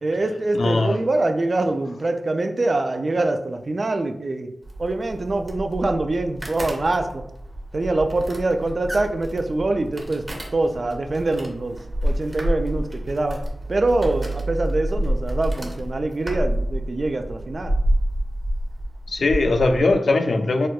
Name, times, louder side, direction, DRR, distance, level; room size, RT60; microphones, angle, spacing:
voice 1, 0.0-4.5 4.8-7.2 7.7-10.2 10.5-11.8 12.0-13.4 13.7-17.7, right 2 dB, 55° right, 6 dB, 0.3 m, -24 dB
voice 2, 0.5-1.0 19.1-20.7, left 3 dB, 75° left, 6 dB, 0.3 m, -20 dB
sound 1, 4.6-19.9, right 1 dB, 35° right, 0.8 m, -28 dB
4.1 x 2.2 x 2.3 m, 0.78 s
cardioid pair, 55°, 0 cm